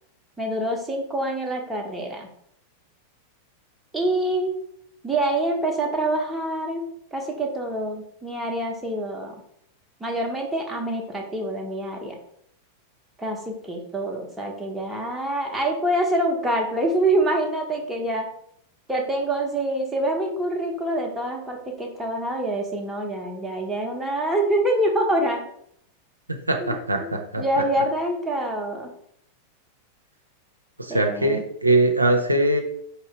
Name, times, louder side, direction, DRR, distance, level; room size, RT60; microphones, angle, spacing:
voice 1, 0.4-2.3 3.9-4.5 5.0-9.3 10.0-12.2 13.2-18.3 18.9-25.4 26.6-26.8 27.4-28.9 30.9-31.4, right 1 dB, 10° right, 0 dB, 0.8 m, -26 dB
voice 2, 26.5-27.4 30.8-32.6, right 2 dB, 85° right, 4 dB, 0.4 m, -21 dB
4.7 x 2.8 x 3.2 m, 0.71 s
figure-of-eight pair, 90°, 0 cm